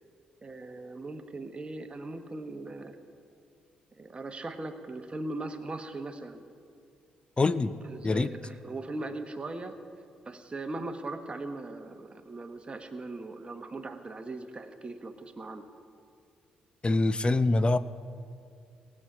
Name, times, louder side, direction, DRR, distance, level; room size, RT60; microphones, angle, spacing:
voice 1, 0.4-3.0 3.9-6.4 7.8-9.8 10.2-15.7, right 2 dB, 30° right, 6 dB, 1.2 m, -39 dB
voice 2, 7.4-7.7 8.0-8.3 16.8-17.8, left 2 dB, 30° left, 14 dB, 0.6 m, -24 dB
19.0 x 7.5 x 5.0 m, 2.4 s
hypercardioid pair, 45°, 4 cm